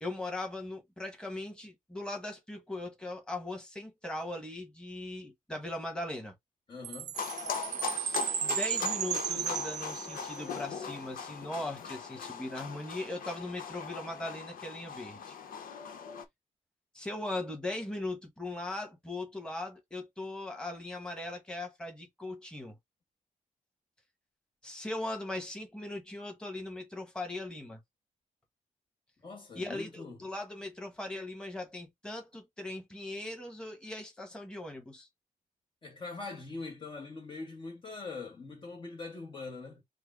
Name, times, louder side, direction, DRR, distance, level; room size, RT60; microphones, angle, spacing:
voice 1, 0.0-6.3 7.9-15.4 16.9-22.8 24.6-27.8 29.5-35.1, left 2 dB, 5° left, 1.5 m, -39 dB
voice 2, 6.7-7.2 29.2-30.2 35.8-39.8, left 3 dB, 35° left, 1.2 m, -42 dB
Chime, 6.8-10.6, right 9 dB, 60° right, 0.4 m, -34 dB
sound 1, 7.2-16.3, left 7 dB, 85° left, 1.0 m, -40 dB
4.7 x 2.3 x 4.8 m
wide cardioid pair, 160°, 14 cm